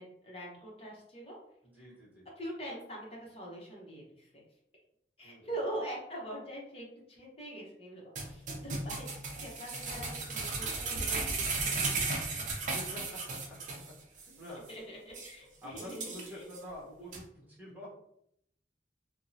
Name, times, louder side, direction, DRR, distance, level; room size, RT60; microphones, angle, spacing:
voice 1, 0.0-1.4 1.8-1.9 2.4-4.4 5.2-9.1 9.4-13.0 14.7-16.5, right 1 dB, 35° left, -3 dB, 0.9 m, -43 dB
voice 2, 1.6-2.3 5.2-5.4 12.7-13.4 13.7-13.8 14.1-14.7 15.6-18.0, equal, 10° right, -7 dB, 1.1 m, -47 dB
sound 1, 8.2-13.9 14.2-14.3 14.7-14.8 15.1-15.3 15.8-16.6 17.1-17.2, right 3 dB, 45° right, 0.5 m, -35 dB
3.5 x 2.0 x 2.7 m, 0.74 s
head